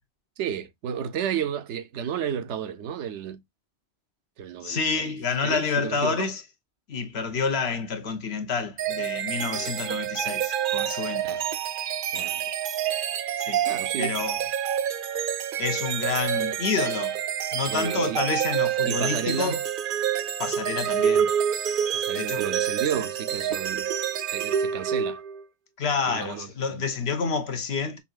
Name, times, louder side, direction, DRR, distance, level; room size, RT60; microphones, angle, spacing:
voice 1, 0.4-3.4 4.4-5.1 5.4-6.3 9.4-9.7 11.2-11.5 12.1-12.4 13.7-14.2 17.7-18.2 18.9-19.6 21.9-23.9 24.3-25.2 26.1-26.8, right 8 dB, 80° right, 0.9 m, -32 dB
voice 2, 4.6-6.4 6.9-11.5 13.4-13.7 14.0-14.4 15.6-17.2 17.5-19.6 20.4-21.3 22.1-22.5 25.8-28.0, left 5 dB, 65° left, 1.1 m, -29 dB
sound 1, 8.8-25.4, right 9 dB, 60° right, 0.6 m, -27 dB
5.5 x 2.7 x 2.3 m
omnidirectional pair, 1.2 m